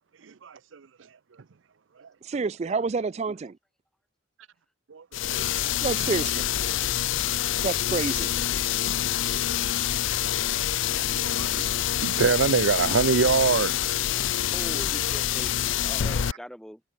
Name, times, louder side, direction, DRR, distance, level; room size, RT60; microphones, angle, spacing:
voice 1, 0.2-0.9 2.0-2.1 2.4-3.0 4.9-5.0 5.3-5.7 10.5-10.6 10.9-11.7 12.0-14.0, right 5 dB, 90° right, 0.6 m, -26 dB
voice 2, 2.3-3.5 5.8-6.4 7.6-8.3, right 4 dB, 35° right, 0.3 m, -28 dB
sound 1, 5.1-16.3, left 11 dB, 85° left, 0.5 m, -26 dB
voice 3, 14.5-15.5 15.8-16.8, equal, 5° left, 5.8 m, -41 dB
open air
head